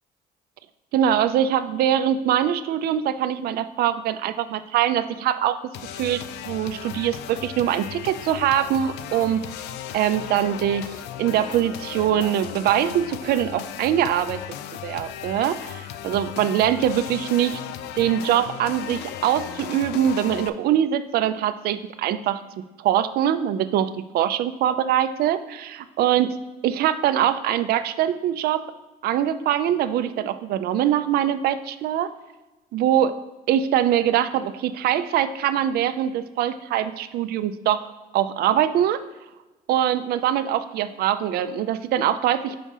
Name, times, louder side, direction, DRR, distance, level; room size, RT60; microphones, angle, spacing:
voice 1, 0.9-5.6 6.0-9.4 9.9-14.4 14.8-17.6 18.0-22.4 22.8-26.3 26.6-28.6 29.0-32.1 32.7-33.2 33.5-39.0 39.7-42.6, right 10 dB, 65° right, 13 dB, 0.4 m, -23 dB
sound 1, 5.7-20.5, left 10 dB, 85° left, 0.4 m, -36 dB
5.1 x 3.7 x 5.4 m, 1.1 s
cardioid pair, 110°, 17 cm